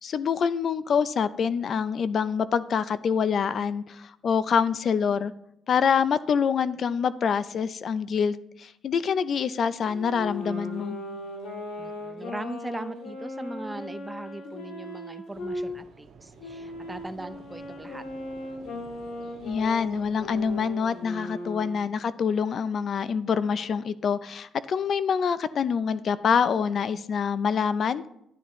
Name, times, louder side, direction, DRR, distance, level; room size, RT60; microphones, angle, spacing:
voice 1, 0.0-5.3 5.7-11.0 19.5-28.1, left 6 dB, 55° left, 15 dB, 0.5 m, -26 dB
Wind instrument woodwind instrument, 9.8-15.6 16.4-21.8, left 1 dB, 90° left, 2.6 m, -38 dB
voice 2, 11.8-18.0, right 2 dB, 15° right, 11 dB, 0.6 m, -39 dB
sound 1, 15.3-20.7, right 4 dB, 60° right, 1.5 m, -51 dB
12.0 x 9.8 x 3.1 m, 0.79 s
cardioid pair, 90°, 0 cm